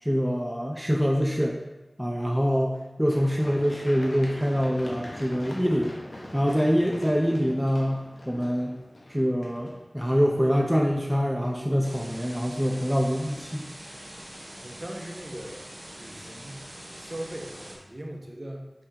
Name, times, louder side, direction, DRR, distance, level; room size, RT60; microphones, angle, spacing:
voice 1, 0.0-1.6 2.0-5.9 6.3-8.0 8.3-8.8 9.1-13.7, equal, 5° right, 0 dB, 0.6 m, -25 dB
Run, 3.1-11.0 11.4-11.5, left 1 dB, 70° left, 1.1 m, -43 dB
sound 1, 11.8-17.8, right 1 dB, 70° right, 2.1 m, -44 dB
voice 2, 14.6-15.6 15.9-18.7, right 1 dB, 35° right, 0 dB, 1.0 m, -40 dB
5.7 x 3.5 x 5.0 m, 1.0 s
wide cardioid pair, 45°, 0 cm